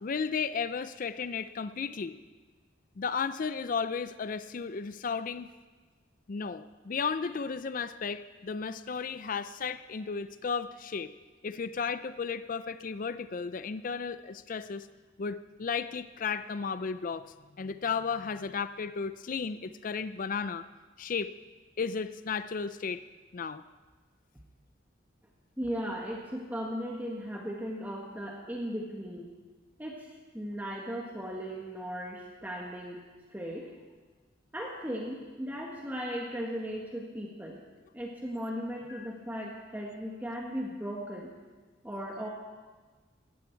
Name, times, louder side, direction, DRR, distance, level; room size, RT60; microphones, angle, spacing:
voice 1, 0.0-2.2 3.0-5.5 6.3-11.1 11.4-14.9 15.2-20.7 21.0-21.3 21.8-23.0 23.3-23.6 38.9-39.1, left 5 dB, 45° left, 13 dB, 0.4 m, -34 dB
voice 2, 25.6-29.3 29.8-33.0 33.3-33.7 34.5-37.6 37.9-41.3 41.8-42.3, equal, 10° right, -2 dB, 1.5 m, -37 dB
18.0 x 15.0 x 4.6 m, 1.3 s
head